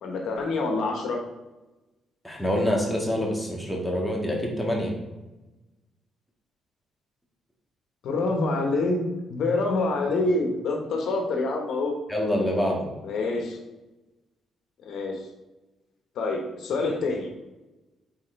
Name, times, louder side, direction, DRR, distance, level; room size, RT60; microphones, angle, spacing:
voice 1, 0.0-1.2 8.0-12.0 13.0-13.6 14.8-15.2 16.1-17.3, left 3 dB, 70° left, 2 dB, 1.3 m, -26 dB
voice 2, 2.2-4.9 12.1-12.9, equal, 5° left, -2 dB, 1.9 m, -26 dB
8.2 x 4.4 x 3.4 m, 1.1 s
cardioid pair, 90°, 0 cm